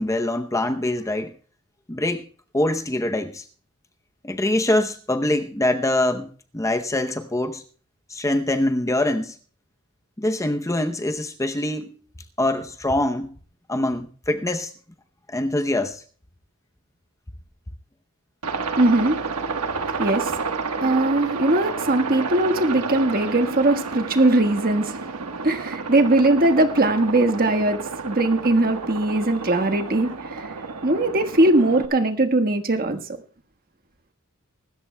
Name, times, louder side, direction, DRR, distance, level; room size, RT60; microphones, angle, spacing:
voice 1, 0.0-1.3 1.9-2.2 2.5-3.4 4.2-7.6 8.1-9.4 10.2-11.9 12.4-13.3 13.7-14.7 15.3-16.0, left 1 dB, 15° left, 0.7 m, -24 dB
Aircraft, 18.4-31.9, right 4 dB, 90° right, 1.3 m, -30 dB
voice 2, 18.8-19.4 20.0-20.4 20.8-30.6 30.8-33.0, right 2 dB, 40° right, 1.5 m, -20 dB
24.0 x 13.5 x 2.2 m
head